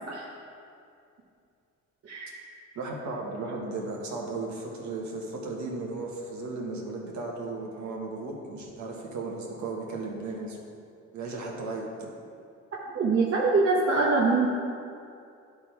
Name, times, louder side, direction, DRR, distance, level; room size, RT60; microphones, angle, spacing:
voice 1, 2.7-10.6 11.1-11.9, right 3 dB, 70° right, -1 dB, 1.4 m, -35 dB
voice 2, 12.9-14.5, right 3 dB, 55° right, -4 dB, 1.0 m, -23 dB
10.5 x 3.6 x 4.6 m, 2.5 s
cardioid pair, 90°, 30 cm